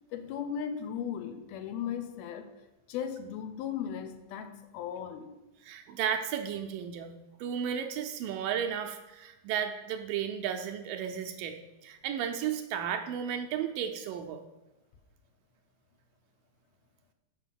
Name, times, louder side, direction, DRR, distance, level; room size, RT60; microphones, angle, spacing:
voice 1, 0.1-2.5 2.9-5.3, left 8 dB, 85° left, 8 dB, 2.7 m, -37 dB
voice 2, 5.6-7.1 7.4-11.6 11.8-14.4, right 8 dB, 80° right, 5 dB, 2.1 m, -33 dB
7.0 x 5.6 x 7.3 m, 0.98 s
omnidirectional pair, 4.3 m